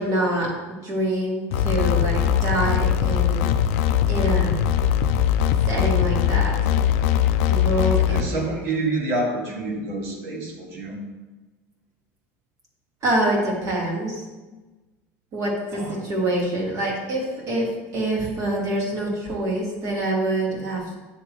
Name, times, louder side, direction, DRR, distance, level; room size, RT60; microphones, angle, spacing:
voice 1, 0.0-3.5 4.1-4.6 5.7-6.6 7.5-8.5 13.0-14.2 15.3-20.9, right 1 dB, 45° right, -3 dB, 2.1 m, -25 dB
sound 1, 1.5-8.2, left 10 dB, 85° left, 0.4 m, -21 dB
voice 2, 8.1-11.0 15.7-16.0, right 2 dB, 85° right, -2 dB, 1.8 m, -28 dB
9.6 x 3.8 x 3.0 m, 1.2 s
supercardioid pair, 115°, 8 cm